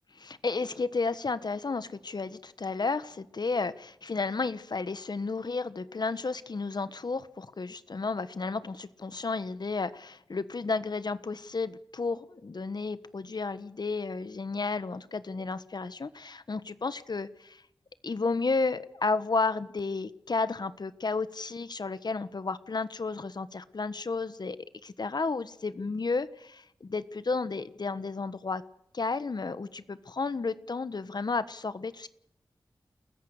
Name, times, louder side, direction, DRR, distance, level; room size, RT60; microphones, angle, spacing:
voice 1, 0.2-17.6 18.0-24.6 24.8-28.6 28.9-32.1, left 4 dB, 55° left, 14 dB, 1.3 m, -32 dB
30.0 x 14.5 x 6.7 m, 0.77 s
cardioid pair, 40°, 8 cm